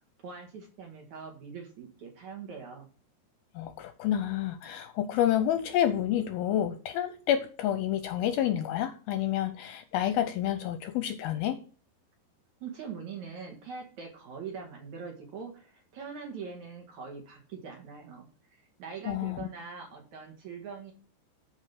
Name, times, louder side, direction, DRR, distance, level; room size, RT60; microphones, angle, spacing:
voice 1, 0.2-2.9 12.6-18.3 18.8-20.9, right 5 dB, 55° right, 2 dB, 2.6 m, -42 dB
voice 2, 3.6-11.6 19.1-19.5, left 11 dB, 80° left, 10 dB, 2.3 m, -29 dB
12.5 x 5.0 x 5.8 m, 0.40 s
omnidirectional pair, 4.8 m